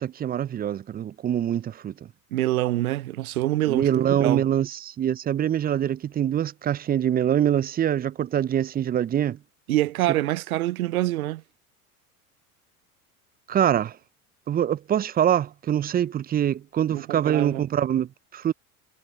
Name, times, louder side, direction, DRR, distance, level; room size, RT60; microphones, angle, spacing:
voice 1, 0.0-2.1 3.7-9.4 13.5-14.0 14.5-18.5, right 10 dB, 20° right, 0.5 m, -24 dB
voice 2, 2.3-4.4 9.7-11.4 16.9-17.6, right 16 dB, 70° right, 1.1 m, -25 dB
figure-of-eight pair, 75°, 45 cm